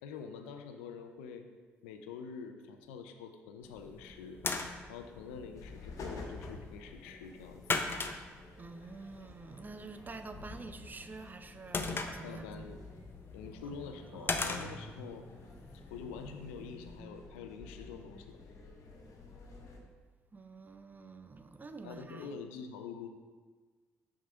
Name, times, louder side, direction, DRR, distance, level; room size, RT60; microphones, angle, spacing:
voice 1, 0.0-1.5 1.8-4.4 4.9-7.6 12.2-12.8 13.3-15.2 15.9-18.4 21.8-23.1, left 6 dB, 85° left, 7 dB, 0.4 m, -46 dB
sound 1, 3.6-16.7, left 3 dB, 35° left, 0.6 m, -41 dB
sound 2, 5.5-19.8, left 3 dB, 55° left, 1.2 m, -50 dB
voice 2, 8.6-12.8 14.1-14.5 20.3-22.4, right 3 dB, 30° right, 8 dB, 0.5 m, -48 dB
6.1 x 3.7 x 4.5 m, 1.4 s
hypercardioid pair, 50°, 7 cm